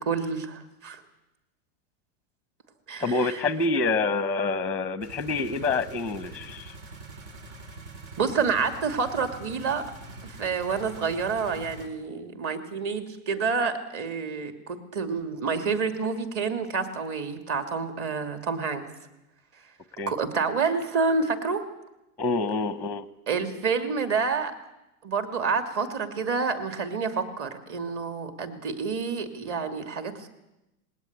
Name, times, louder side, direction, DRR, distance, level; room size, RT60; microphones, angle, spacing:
voice 1, 0.0-1.0 2.9-3.4 8.2-9.8 10.4-18.8 20.1-21.6 23.3-24.5 25.0-30.3, right 5 dB, 35° right, 7 dB, 2.8 m, -28 dB
voice 2, 3.0-6.7 20.0-20.1 22.2-23.1, left 3 dB, 5° left, 14 dB, 0.7 m, -27 dB
sound 1, 5.0-11.9, right 3 dB, 70° right, 5.1 m, -44 dB
20.5 x 17.5 x 9.8 m, 0.94 s
supercardioid pair, 145°, 41 cm